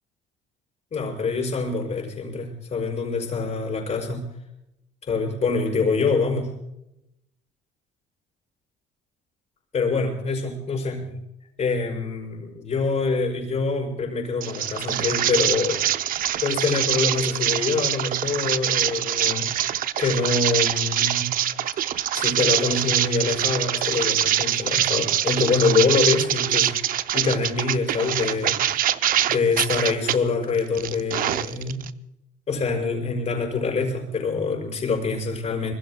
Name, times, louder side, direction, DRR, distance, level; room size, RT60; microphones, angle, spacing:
voice 1, 0.9-4.2 5.0-6.5 9.7-11.1 11.6-15.8 16.4-19.5 20.0-21.3 22.1-28.8 29.3-31.9 32.5-35.7, left 4 dB, 40° left, 1 dB, 5.6 m, -25 dB
sound 1, 14.4-30.2 30.6-31.9, right 11 dB, 55° right, 0.6 m, -24 dB
25.5 x 21.0 x 2.2 m, 0.84 s
cardioid pair, 110°, 17 cm